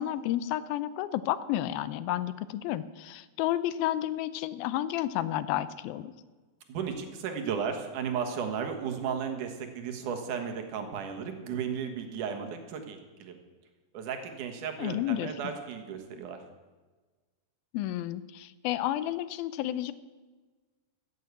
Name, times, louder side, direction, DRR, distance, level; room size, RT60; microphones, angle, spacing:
voice 1, 0.0-6.1 14.8-15.3 17.7-19.9, left 13 dB, 90° left, 15 dB, 2.5 m, -31 dB
voice 2, 6.7-13.4 13.9-16.4, right 7 dB, 65° right, 5 dB, 2.8 m, -34 dB
14.5 x 8.3 x 8.2 m, 1.3 s
omnidirectional pair, 4.1 m